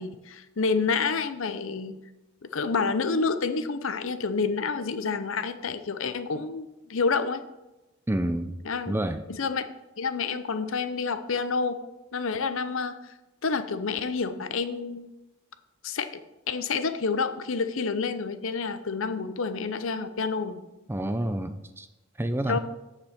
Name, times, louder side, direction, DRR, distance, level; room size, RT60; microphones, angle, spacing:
voice 1, 0.0-2.0 2.5-7.4 8.7-8.9 9.3-9.6 10.0-11.8 12.1-13.1 13.4-15.1 15.8-16.2 16.5-20.6 22.5-22.6, left 4 dB, 60° left, 11 dB, 0.6 m, -28 dB
voice 2, 8.1-8.6 8.9-9.2 20.9-21.9 22.2-22.6, right 1 dB, 10° right, 10 dB, 0.4 m, -28 dB
7.7 x 6.8 x 5.8 m, 1.0 s
head